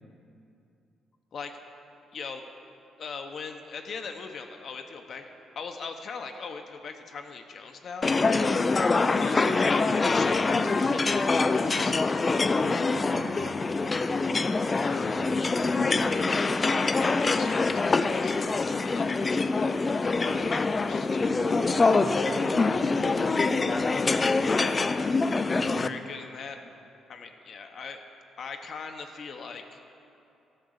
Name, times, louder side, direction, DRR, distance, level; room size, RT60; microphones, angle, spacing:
voice 1, 2.1-2.4 3.0-8.1 8.4-8.7 9.2-12.0 14.8-15.3 16.7-19.8 20.1-21.5 23.9-25.0 25.8-26.6 27.1-28.0 28.4-29.8, left 5 dB, 55° left, 5 dB, 0.9 m, -40 dB
sound 1, 8.0-25.9, left 3 dB, 30° left, 0.4 m, -25 dB
voice 2, 12.5-13.5 14.8-16.5 21.4-24.1 25.5-25.9, right 2 dB, 50° right, 0 dB, 1.6 m, -42 dB
12.0 x 6.7 x 6.6 m, 2.7 s
cardioid pair, 90°, 0 cm